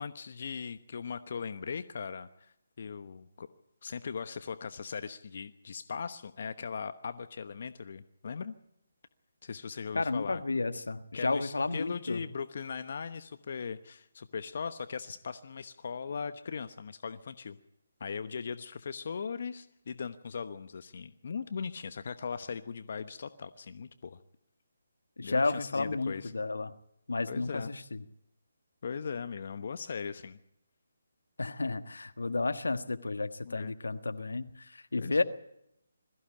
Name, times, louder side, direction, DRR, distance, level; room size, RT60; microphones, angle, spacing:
voice 1, 0.0-3.5 3.8-8.5 9.4-10.4 11.1-17.6 18.0-24.2 25.2-26.3 27.3-27.7 28.8-30.4 33.4-33.7 35.0-35.2, left 6 dB, 55° left, 11 dB, 1.0 m, -39 dB
voice 2, 9.9-12.2 25.2-26.7 27.1-28.0 31.4-35.2, left 3 dB, 80° left, 11 dB, 1.4 m, -32 dB
21.5 x 15.0 x 8.8 m, 0.81 s
figure-of-eight pair, 150°, 0 cm